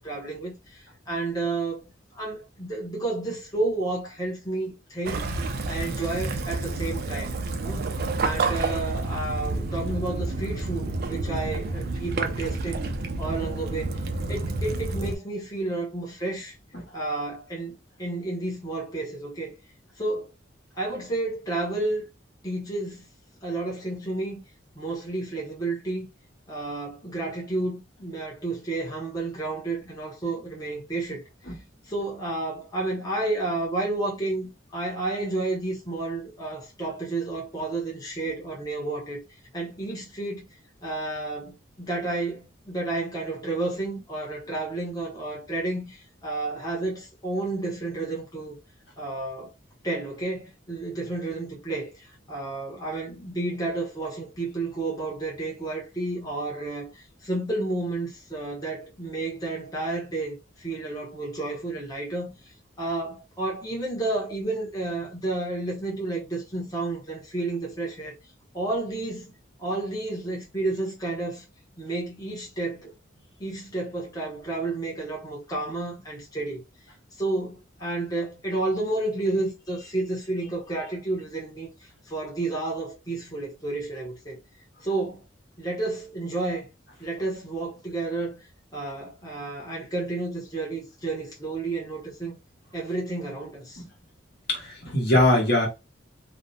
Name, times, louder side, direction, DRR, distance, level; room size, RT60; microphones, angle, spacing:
voice 1, 0.0-5.3 5.7-7.3 7.6-12.8 13.2-14.0 14.3-16.6 16.9-19.5 20.0-20.3 20.7-22.0 22.4-23.1 23.4-24.4 24.8-26.1 26.5-31.5 31.9-40.5 40.8-48.5 49.0-49.5 49.8-62.5 62.8-68.1 68.5-69.3 69.6-71.4 71.8-72.9 73.4-76.6 77.1-84.4 84.8-85.2 85.6-86.7 87.0-92.4 92.7-93.8, right 2 dB, 20° left, 0.7 m, -31 dB
Waves surf / Splash splatter / Trickle dribble, 5.0-15.1, right 3 dB, 55° right, 0.4 m, -29 dB
voice 2, 94.5-95.7, left 1 dB, 60° left, 1.0 m, -22 dB
2.5 x 2.1 x 2.6 m
head